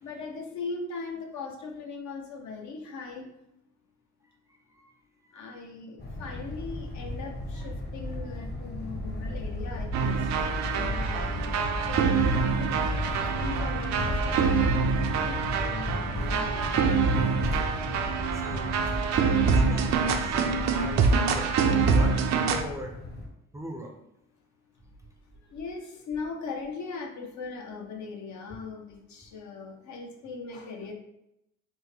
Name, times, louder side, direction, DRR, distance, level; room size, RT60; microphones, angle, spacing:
voice 1, 0.0-3.3 5.3-16.9 25.3-30.9, left 4 dB, 70° left, 2 dB, 0.7 m, -40 dB
sound 1, 6.0-23.3, left 1 dB, 35° left, 0.8 m, -34 dB
sound 2, 9.9-22.6, right 5 dB, 65° right, 0.4 m, -26 dB
voice 2, 18.3-18.8 19.2-22.2 22.5-22.9 23.5-23.9, equal, 10° right, 1 dB, 0.4 m, -40 dB
3.5 x 2.1 x 3.2 m, 0.83 s
cardioid pair, 90°, 30 cm